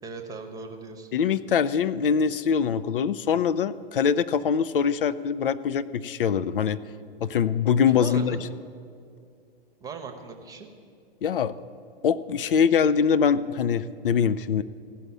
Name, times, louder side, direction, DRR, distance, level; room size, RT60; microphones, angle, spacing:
voice 1, 0.0-1.1 7.9-8.4 9.8-10.7, right 4 dB, 10° right, 4 dB, 0.9 m, -38 dB
voice 2, 1.1-6.8 7.2-8.4 11.2-11.5 12.0-14.6, left 7 dB, 65° left, 14 dB, 0.5 m, -23 dB
16.0 x 5.6 x 7.4 m, 2.3 s
figure-of-eight pair, 105°, 29 cm